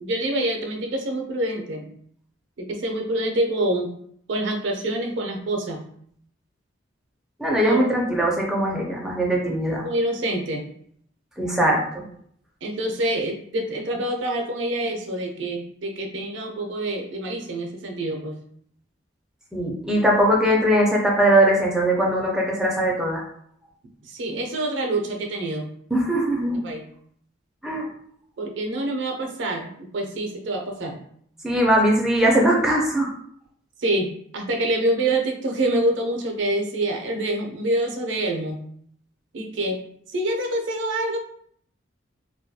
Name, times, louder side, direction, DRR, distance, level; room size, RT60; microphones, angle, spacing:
voice 1, 0.0-1.9 2.6-3.9 4.3-5.8 7.6-7.8 9.8-10.7 12.6-18.4 24.0-25.7 26.6-26.8 28.4-31.0 33.8-38.6 39.3-39.8 40.1-41.2, right 1 dB, 70° right, 3 dB, 0.4 m, -26 dB
voice 2, 7.4-9.8 11.4-12.0 19.5-23.2 25.9-26.6 27.6-27.9 31.4-33.1, right 1 dB, 5° right, -2 dB, 0.4 m, -20 dB
2.2 x 2.2 x 2.7 m, 0.65 s
head